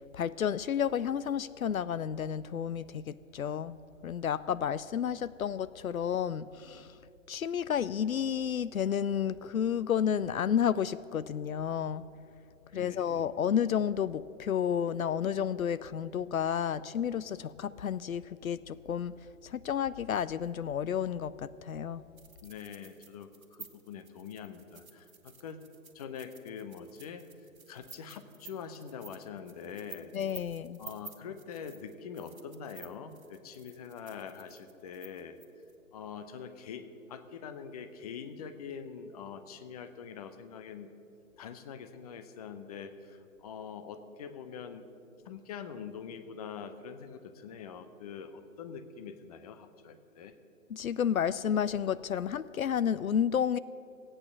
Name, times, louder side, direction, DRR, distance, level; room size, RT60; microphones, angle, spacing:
voice 1, 0.1-3.8 4.0-6.9 7.3-12.0 12.7-19.1 19.4-22.0 30.1-30.8 50.7-53.6, left 8 dB, 85° left, 17 dB, 0.5 m, -31 dB
voice 2, 12.7-13.2 22.4-25.6 25.9-30.1 30.8-35.4 35.9-40.9 41.4-44.9 45.2-50.3, left 7 dB, 30° left, 10 dB, 0.7 m, -44 dB
sound 1, 22.2-35.7, right 4 dB, 80° right, 1.4 m, -52 dB
16.5 x 8.8 x 6.5 m, 2.6 s
figure-of-eight pair, 130°, 41 cm